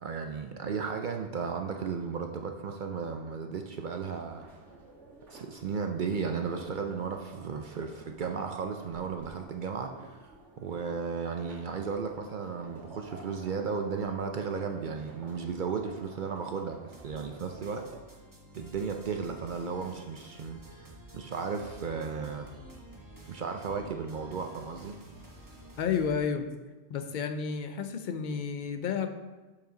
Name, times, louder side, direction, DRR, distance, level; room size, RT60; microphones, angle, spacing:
voice 1, 0.0-4.5 5.3-10.2 10.6-17.8 18.5-20.6 21.1-22.5 23.3-25.0, right 5 dB, 55° right, 4 dB, 0.5 m, -34 dB
sound 1, 4.1-18.0, right 2 dB, 75° right, 1.8 m, -52 dB
sound 2, 16.9-26.1, right 1 dB, 15° right, 1.1 m, -51 dB
voice 2, 25.8-26.5 26.9-29.1, left 6 dB, 55° left, 6 dB, 0.6 m, -31 dB
6.7 x 5.6 x 3.8 m, 1.2 s
omnidirectional pair, 1.2 m